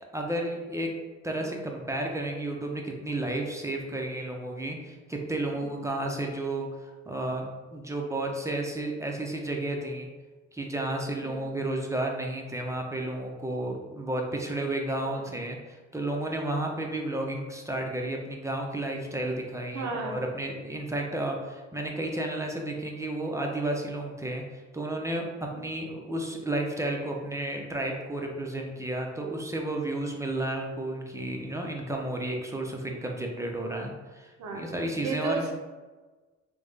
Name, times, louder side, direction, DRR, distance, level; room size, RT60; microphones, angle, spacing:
voice 1, 0.1-0.9 1.2-10.1 10.5-24.4 24.7-25.3 25.5-35.5, right 1 dB, 10° right, 0 dB, 0.5 m, -32 dB
voice 2, 19.7-20.2 25.5-25.6 34.4-34.6 35.0-35.5, right 4 dB, 65° right, 1 dB, 0.7 m, -33 dB
3.6 x 2.1 x 3.2 m, 1.3 s
cardioid pair, 90°, 30 cm